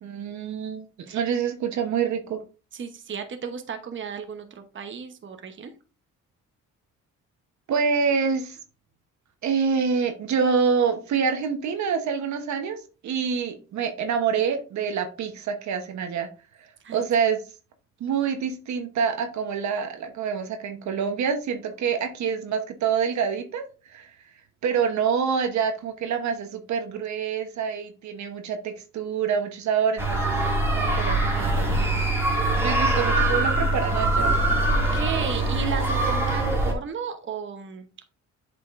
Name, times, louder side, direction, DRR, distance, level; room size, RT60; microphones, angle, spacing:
voice 1, 0.0-2.4 7.7-8.6 9.4-16.3 16.9-17.4 18.0-23.6 23.9-24.1 24.6-30.4 30.7-32.1 32.6-34.3, right 6 dB, 70° right, 6 dB, 1.1 m, -26 dB
voice 2, 2.7-5.7 16.8-17.0 34.8-38.0, right 6 dB, 40° right, 6 dB, 1.0 m, -34 dB
sound 1, 30.0-36.7, right 2 dB, 10° right, 2.2 m, -23 dB
8.1 x 5.1 x 2.5 m, 0.34 s
cardioid pair, 90°, 30 cm